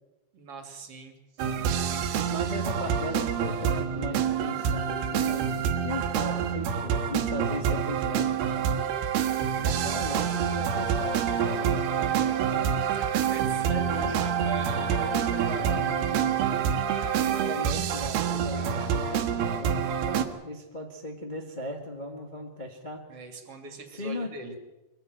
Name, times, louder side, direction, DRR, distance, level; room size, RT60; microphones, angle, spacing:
voice 1, 0.3-1.5 12.8-15.0 18.5-18.9 23.1-24.6, right 5 dB, 40° right, 5 dB, 3.1 m, -43 dB
sound 1, 1.4-20.2, right 8 dB, 75° right, 3.2 m, -27 dB
voice 2, 2.3-5.6 5.8-8.4 9.5-12.7 13.7-14.2 14.9-16.4 17.1-23.1 23.9-24.3, left 1 dB, 80° left, 2 dB, 0.4 m, -37 dB
23.0 x 15.0 x 9.3 m, 1.1 s
omnidirectional pair, 4.7 m